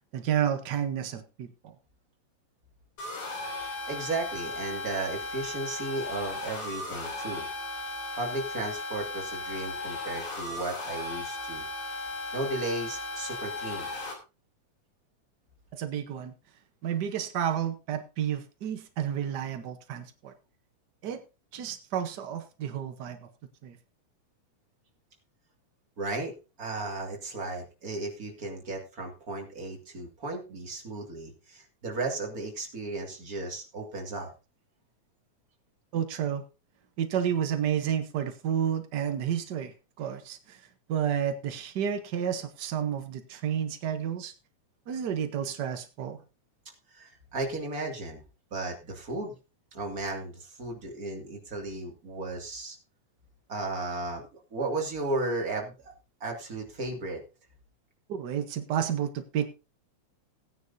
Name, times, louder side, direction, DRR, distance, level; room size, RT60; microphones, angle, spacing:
voice 1, 0.1-1.7 15.7-16.3 16.8-20.3 21.0-21.2 21.5-23.2 23.6-23.8 35.9-36.4 37.0-40.6 40.9-44.3 44.9-46.2 58.1-59.5, right 9 dB, 80° right, 8 dB, 0.9 m, -31 dB
sound 1, 3.0-14.1, left 2 dB, 75° left, 4.5 m, -36 dB
voice 2, 3.9-7.5 8.2-11.6 12.3-13.9 26.0-34.3 46.9-48.2 48.5-49.3 49.7-52.8 53.5-54.2 54.5-55.9 56.2-57.2, right 2 dB, 30° right, 1 dB, 2.7 m, -35 dB
17.5 x 9.5 x 2.7 m, 0.29 s
omnidirectional pair, 3.3 m